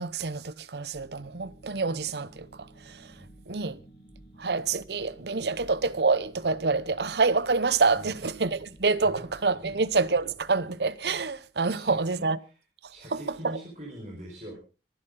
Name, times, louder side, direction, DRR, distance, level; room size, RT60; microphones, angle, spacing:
voice 1, 0.0-3.1 3.5-3.8 4.4-12.4 12.8-13.6, right 4 dB, 70° right, 0.8 m, -27 dB
sound 1, 0.9-10.4, right 1 dB, 50° left, 6.6 m, -53 dB
voice 2, 11.7-12.5 12.9-14.5, right 1 dB, 40° right, 4.8 m, -43 dB
24.5 x 11.0 x 3.8 m
head